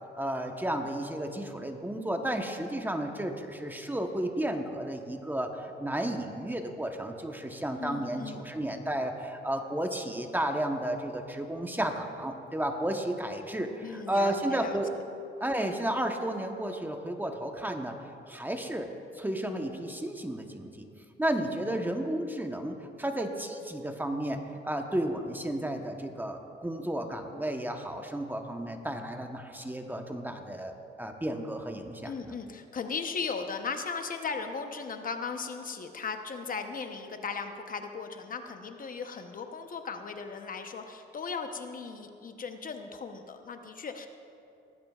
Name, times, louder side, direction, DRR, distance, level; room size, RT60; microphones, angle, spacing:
voice 1, 0.2-14.9 15.4-18.0 18.3-20.9 21.2-32.3, right 1 dB, 10° right, 4 dB, 1.0 m, -33 dB
voice 2, 7.8-8.5 13.8-14.7 32.0-44.1, left 5 dB, 45° left, 6 dB, 0.9 m, -37 dB
18.5 x 14.5 x 2.4 m, 2.7 s
cardioid pair, 90°, 20 cm